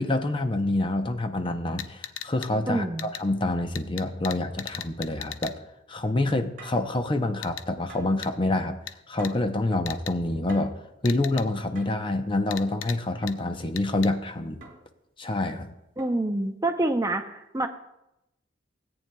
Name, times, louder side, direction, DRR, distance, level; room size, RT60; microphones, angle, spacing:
voice 1, 0.0-5.5 5.9-8.8 9.1-10.7 11.0-14.6 15.2-15.7, left 2 dB, 25° left, 7 dB, 0.6 m, -27 dB
sound 1, 1.8-2.5 3.0-3.2 3.7-5.5 7.4-7.6 8.2-8.3 8.9-9.0 9.2-9.3 9.9-10.1 11.0-11.5 12.5-13.0 13.3-13.4 13.8-14.1, left 10 dB, 85° left, 0.6 m, -37 dB
voice 2, 2.7-3.1 16.0-17.7, right 2 dB, 20° right, 6 dB, 0.5 m, -27 dB
sound 2, 6.6-6.9 7.9-8.2 9.2-9.5 10.5-10.8 11.8-12.1 13.2-13.5 14.6-15.0 16.0-16.3, right 3 dB, 50° right, 2.0 m, -49 dB
17.0 x 8.9 x 2.2 m, 0.86 s
head